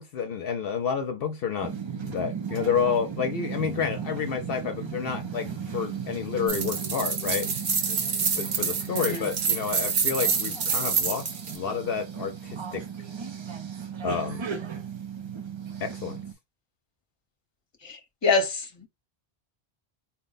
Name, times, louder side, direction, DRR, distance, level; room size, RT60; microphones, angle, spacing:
voice 1, 0.0-1.8 2.0-7.5 8.4-11.3 11.5-12.8 14.0-14.5 15.8-16.2, left 6 dB, 70° left, 0.7 m, -29 dB
sound 1, 1.6-16.3, right 6 dB, 40° right, 0.4 m, -36 dB
sound 2, 6.5-11.6, right 5 dB, 55° right, 0.9 m, -27 dB
voice 2, 8.9-9.3 17.8-18.9, left 4 dB, 30° left, 0.9 m, -26 dB
4.2 x 2.1 x 3.9 m
omnidirectional pair, 1.1 m